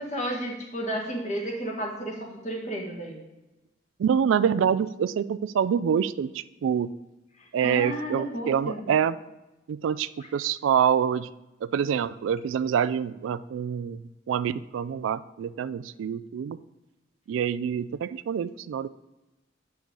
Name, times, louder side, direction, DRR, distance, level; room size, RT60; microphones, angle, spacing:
voice 1, 0.0-3.2 7.4-8.8, right 1 dB, 35° left, -1 dB, 1.8 m, -32 dB
voice 2, 4.0-6.9 7.5-9.2 9.7-11.3 11.6-14.0 14.3-16.6 17.3-18.9, right 8 dB, 80° right, 17 dB, 0.3 m, -26 dB
8.7 x 6.3 x 3.9 m, 1.0 s
head